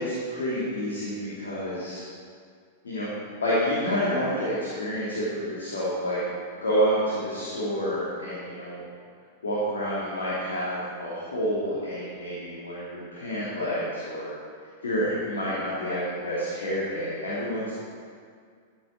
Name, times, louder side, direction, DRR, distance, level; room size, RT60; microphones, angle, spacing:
voice 1, 0.0-2.0 2.8-3.1 3.4-6.2 6.6-8.8 9.4-14.3 14.8-17.7, equal, 70° left, -8 dB, 2.8 m, -28 dB
13.5 x 8.0 x 4.6 m, 2.1 s
figure-of-eight pair, 95°, 0 cm